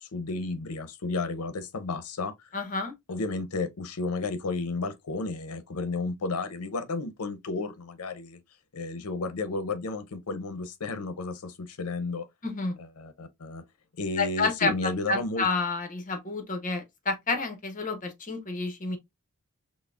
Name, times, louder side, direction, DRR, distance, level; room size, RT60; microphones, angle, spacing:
voice 1, 0.0-2.5 3.1-8.4 8.7-12.3 12.8-13.6 14.0-15.5, left 3 dB, 75° left, 0.6 m, -32 dB
voice 2, 2.5-2.9 12.4-12.8 14.2-14.7 15.1-19.0, left 3 dB, 35° left, 0.8 m, -29 dB
5.6 x 2.0 x 2.3 m
head